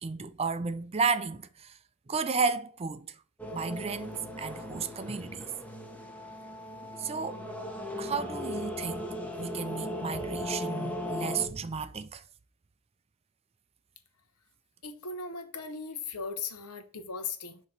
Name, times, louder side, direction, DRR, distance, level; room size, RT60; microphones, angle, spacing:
voice 1, 0.0-1.8 2.1-3.2 3.5-5.5 7.0-7.5 8.0-9.1 9.4-12.2, right 5 dB, 25° right, 0.4 m, -33 dB
sound 1, 3.4-11.5, left 1 dB, 5° left, 0.8 m, -37 dB
voice 2, 14.8-17.6, left 4 dB, 90° left, 0.9 m, -38 dB
6.6 x 3.0 x 5.7 m
head